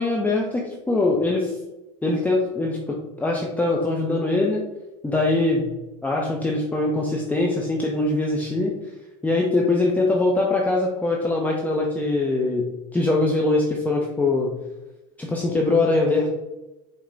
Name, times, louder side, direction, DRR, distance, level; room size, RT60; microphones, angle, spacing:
voice 1, 0.0-1.5 2.0-4.6 5.0-5.7 6.0-8.7 9.2-14.5 15.2-16.3, left 2 dB, 10° left, -1 dB, 0.6 m, -22 dB
4.7 x 2.2 x 3.9 m, 1.0 s
hypercardioid pair, 80°, 17 cm